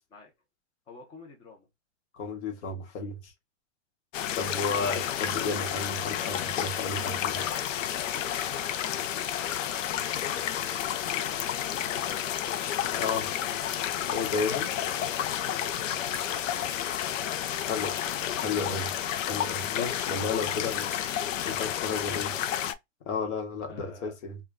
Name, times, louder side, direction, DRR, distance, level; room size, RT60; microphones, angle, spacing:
voice 1, 0.9-1.7 8.1-10.5 10.8-13.1 14.5-15.3 15.6-18.7 22.0-22.5 23.7-24.2, left 4 dB, 15° left, 0.4 m, -50 dB
voice 2, 2.1-3.3 4.4-7.4 12.9-13.3 14.1-14.7 17.7-17.9 18.4-18.8 19.3-20.9 21.4-22.3 23.1-24.4, left 4 dB, 60° left, 1.0 m, -32 dB
sound 1, 4.1-22.7, left 10 dB, 85° left, 0.5 m, -31 dB
2.2 x 2.2 x 3.4 m
hypercardioid pair, 140°, 37 cm